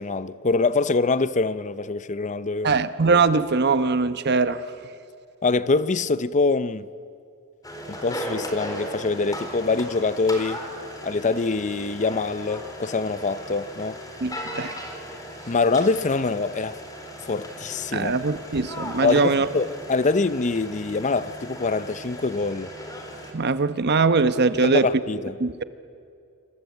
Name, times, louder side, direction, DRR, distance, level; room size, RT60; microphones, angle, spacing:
voice 1, 0.0-2.8 5.4-6.9 7.9-10.6 11.0-14.0 15.5-16.8 17.3-18.2 19.0-22.7 24.6-25.4, left 3 dB, 35° left, 0.6 m, -24 dB
voice 2, 2.6-4.6 14.2-14.8 17.9-19.5 23.3-24.9 25.4-25.6, right 4 dB, 50° right, 1.0 m, -21 dB
sound 1, 7.6-23.3, equal, 15° left, 3.9 m, -37 dB
27.0 x 25.0 x 8.4 m
head